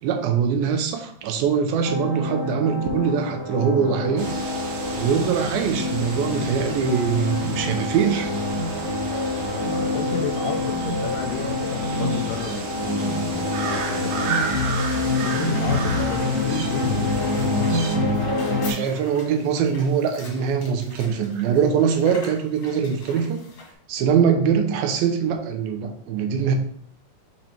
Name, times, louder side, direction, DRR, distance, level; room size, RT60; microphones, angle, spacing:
voice 1, 0.0-4.3 5.0-8.3 18.6-23.4 23.9-26.6, right 7 dB, 85° right, 6 dB, 2.6 m, -22 dB
sound 1, 1.8-18.7, left 2 dB, 10° right, 1.6 m, -26 dB
sound 2, 4.2-18.0, right 4 dB, 70° right, 2.4 m, -33 dB
voice 2, 9.5-14.6 15.2-17.2, left 7 dB, 80° left, 6 dB, 2.1 m, -32 dB
sound 3, 14.9-23.7, left 2 dB, 45° left, 1.9 m, -44 dB
5.9 x 3.9 x 4.3 m, 0.63 s
omnidirectional pair, 4.1 m